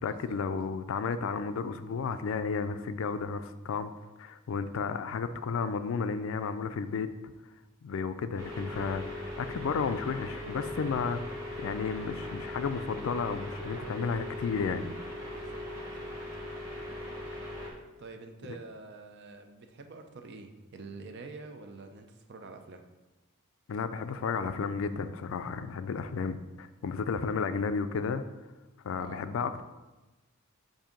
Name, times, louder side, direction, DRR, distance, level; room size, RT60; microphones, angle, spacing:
voice 1, 0.0-3.9 4.2-7.1 7.8-14.9 23.7-28.2 28.8-29.6, left 5 dB, 65° left, 11 dB, 0.4 m, -33 dB
sound 1, 8.4-17.7, left 1 dB, 15° right, 1.2 m, -39 dB
voice 2, 15.3-16.1 18.0-22.8 29.0-29.2, right 3 dB, 55° right, 6 dB, 0.6 m, -47 dB
7.3 x 2.7 x 5.1 m, 1.1 s
head